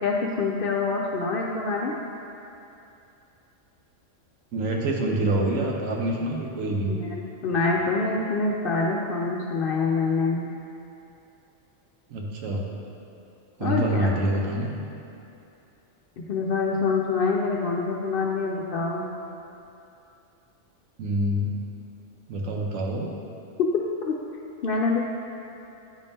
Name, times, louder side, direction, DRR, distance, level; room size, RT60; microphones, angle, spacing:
voice 1, 0.0-1.9 6.9-10.4 13.6-14.1 16.3-19.1 23.6-23.7 24.0-24.1 24.6-25.0, left 4 dB, 65° left, -1 dB, 0.6 m, -25 dB
voice 2, 4.5-7.0 12.1-12.7 13.6-14.7 21.0-21.5 22.3-23.1, right 1 dB, 85° right, -1 dB, 1.2 m, -26 dB
9.1 x 5.3 x 2.7 m, 2.8 s
omnidirectional pair, 1.3 m